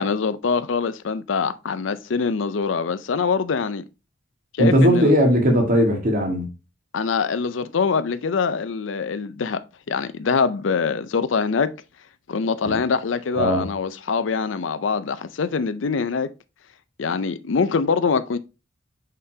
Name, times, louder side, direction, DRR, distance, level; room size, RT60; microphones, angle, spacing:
voice 1, 0.0-3.8 4.5-5.1 6.9-9.6 9.9-11.7 12.3-16.3 17.0-18.4, left 5 dB, 75° left, 0.5 m, -24 dB
voice 2, 4.6-6.5 12.7-12.8 13.3-13.7, equal, 45° right, 1.7 m, -18 dB
6.6 x 5.1 x 2.8 m
head